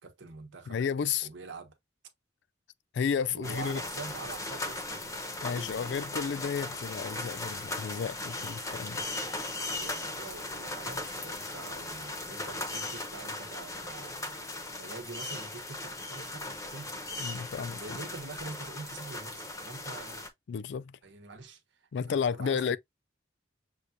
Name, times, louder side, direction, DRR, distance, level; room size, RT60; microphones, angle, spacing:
voice 1, 0.0-0.8 1.2-1.7 3.3-5.2 5.4-6.0 9.7-14.4 14.8-16.9 17.8-20.3 21.0-22.8, right 3 dB, 75° right, 1.0 m, -45 dB
voice 2, 0.7-1.3 2.9-3.8 5.4-9.0 17.2-17.8 20.5-21.0 21.9-22.8, left 6 dB, 65° left, 0.4 m, -32 dB
sound 1, 3.4-20.3, left 2 dB, 15° left, 0.7 m, -38 dB
6.5 x 2.3 x 2.6 m
head